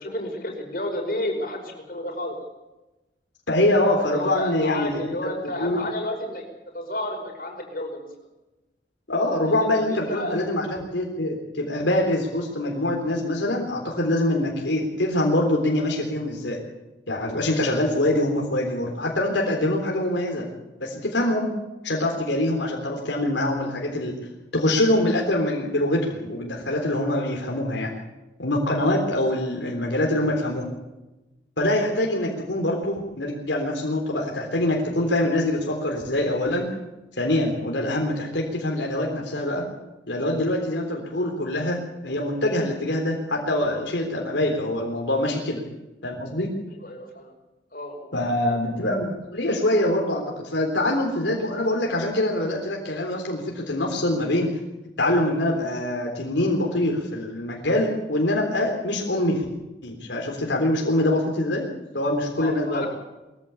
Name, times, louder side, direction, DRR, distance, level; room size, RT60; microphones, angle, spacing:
voice 1, 0.0-2.4 3.8-6.4 6.7-8.1 9.6-10.4 46.8-47.3 47.7-48.1 62.4-62.9, left 1 dB, 50° left, 2 dB, 5.5 m, -31 dB
voice 2, 3.5-5.8 9.1-16.6 17.1-20.5 20.8-21.5 21.8-24.1 24.5-27.9 28.4-30.7 31.6-36.7 37.2-39.6 40.1-41.8 42.0-45.6 46.0-46.5 48.1-54.5 55.0-59.4 59.8-61.7 61.9-62.9, left 1 dB, 85° left, 0 dB, 3.7 m, -24 dB
22.5 x 15.0 x 8.5 m, 1.0 s
head